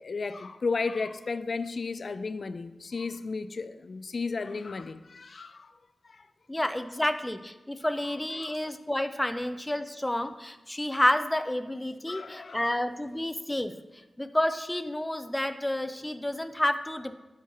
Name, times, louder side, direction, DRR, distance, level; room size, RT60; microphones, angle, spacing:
voice 1, 0.0-5.7 6.1-6.2 8.4-8.6 12.1-12.7, left 4 dB, 65° left, 0.4 m, -34 dB
voice 2, 6.5-13.7 14.2-17.2, left 1 dB, 15° left, 0.6 m, -29 dB
10.0 x 7.2 x 3.0 m
cardioid pair, 50°, 0 cm